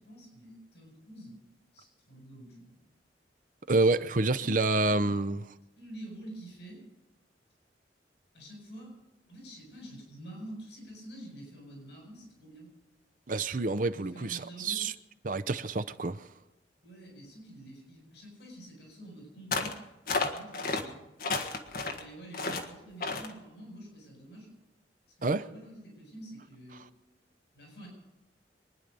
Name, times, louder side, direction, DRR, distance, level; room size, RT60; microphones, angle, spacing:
voice 1, 0.0-1.4 1.7-2.8 4.4-4.5 4.8-5.3 5.8-6.8 8.3-9.0 9.3-12.7 13.9-14.8 16.8-19.8 20.3-21.0 21.9-24.5 25.1-26.9 27.5-27.9, right 1 dB, 70° left, 7.3 m, -47 dB
voice 2, 3.7-5.4 13.3-14.9 15.2-16.2 25.2-25.4, right 3 dB, 50° right, 0.7 m, -28 dB
sound 1, 19.5-19.8 20.1-20.8 21.2-22.0 22.3-22.7 23.0-23.3, left 3 dB, 55° left, 1.5 m, -31 dB
24.5 x 10.5 x 5.4 m
head